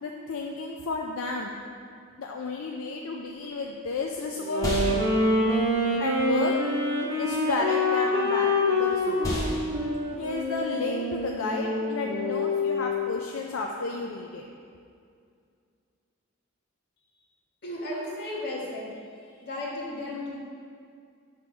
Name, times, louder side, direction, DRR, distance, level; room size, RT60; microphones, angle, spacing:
voice 1, 0.0-1.6 2.2-4.8 6.0-6.5 7.2-9.4 10.2-14.4, left 3 dB, 75° left, 1 dB, 0.4 m, -32 dB
sound 1, 3.3-12.9, equal, 15° left, 1.0 m, -37 dB
Wind instrument woodwind instrument, 4.4-13.0, left 1 dB, 65° right, 1.5 m, -26 dB
voice 2, 17.6-18.9 19.2-20.4, left 1 dB, 50° left, -5 dB, 1.4 m, -34 dB
5.8 x 3.5 x 5.9 m, 2.3 s
head